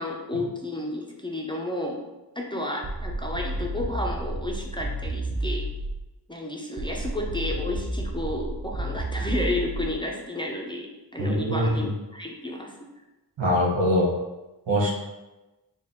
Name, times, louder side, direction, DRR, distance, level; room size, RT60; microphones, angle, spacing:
voice 1, 0.0-2.0 2.4-5.7 6.3-12.9, left 1 dB, 10° left, -1 dB, 0.5 m, -32 dB
sound 1, 2.8-6.1 6.8-10.1, right 1 dB, 35° right, 0.5 m, -31 dB
voice 2, 11.2-11.9 13.4-14.1 14.7-14.9, equal, 90° right, -1 dB, 0.9 m, -23 dB
3.6 x 2.4 x 4.1 m, 1.0 s
wide cardioid pair, 70°, 43 cm